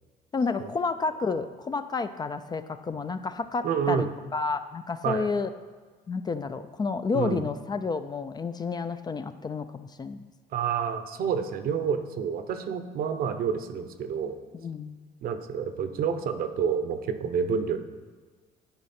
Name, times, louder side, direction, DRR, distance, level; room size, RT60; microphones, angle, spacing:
voice 1, 0.3-5.5 6.1-10.3 14.5-15.0, left 4 dB, 25° left, 11 dB, 0.3 m, -30 dB
voice 2, 3.6-4.1 5.0-5.3 7.1-7.5 10.5-14.4 15.2-17.8, right 7 dB, 60° right, 9 dB, 0.7 m, -29 dB
10.5 x 4.8 x 4.2 m, 1.5 s
cardioid pair, 110°, 17 cm